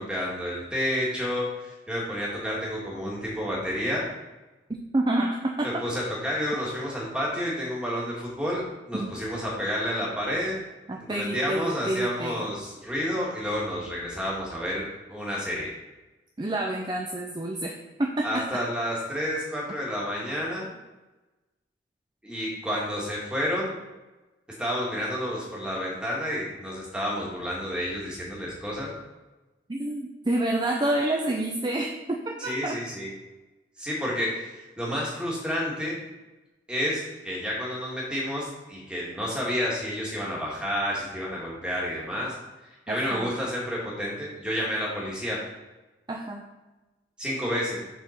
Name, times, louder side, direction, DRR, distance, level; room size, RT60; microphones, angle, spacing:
voice 1, 0.0-4.0 5.6-10.6 11.1-14.8 15.1-15.7 18.2-20.7 22.2-23.7 24.6-28.9 32.4-33.1 33.8-36.0 36.7-42.4 42.9-45.4 47.2-47.8, equal, 5° right, -5 dB, 1.9 m, -30 dB
voice 2, 4.9-5.7 8.9-9.1 10.9-12.5 16.4-17.7 18.0-18.6 29.7-32.8 42.9-43.3 46.1-46.4, right 1 dB, 25° right, 1 dB, 0.5 m, -28 dB
6.7 x 4.3 x 5.8 m, 1.1 s
head